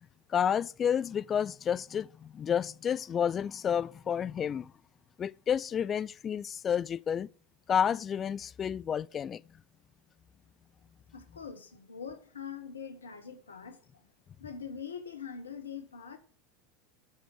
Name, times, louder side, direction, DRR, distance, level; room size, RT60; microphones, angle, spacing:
voice 1, 0.3-4.7 5.2-7.3 7.7-9.4, left 8 dB, 30° left, 0.4 m, -30 dB
voice 2, 11.1-13.8 14.4-16.2, left 6 dB, 85° left, 1.2 m, -43 dB
8.5 x 5.7 x 6.5 m
hypercardioid pair, 85°, 0 cm